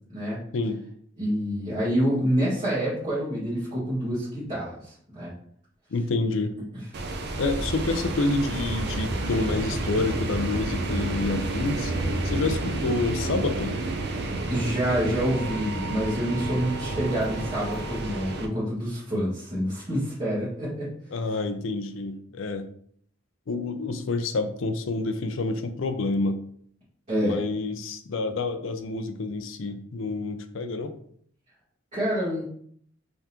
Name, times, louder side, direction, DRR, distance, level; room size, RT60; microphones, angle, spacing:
voice 1, 1.2-5.3 14.5-20.9 27.1-27.4 31.9-32.4, equal, 35° right, -11 dB, 1.7 m, -27 dB
voice 2, 5.9-6.6 7.4-11.9 12.2-13.8 21.1-22.7 23.5-26.4 27.2-30.9, left 3 dB, 70° left, 7 dB, 0.5 m, -28 dB
sound 1, 6.9-18.5, right 2 dB, 55° right, 0.6 m, -30 dB
3.5 x 3.5 x 2.9 m, 0.62 s
head